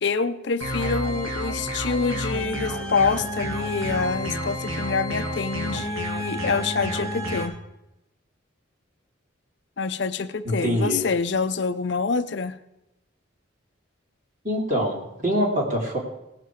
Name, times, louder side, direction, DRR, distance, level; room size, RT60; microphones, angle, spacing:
voice 1, 0.0-7.5 9.8-12.6, left 4 dB, 60° left, 10 dB, 0.5 m, -26 dB
sound 1, 0.6-7.5, equal, 85° right, 2.3 m, -30 dB
voice 2, 10.4-11.0 14.4-16.0, equal, 40° right, -2 dB, 2.9 m, -24 dB
18.5 x 7.5 x 4.7 m, 0.89 s
head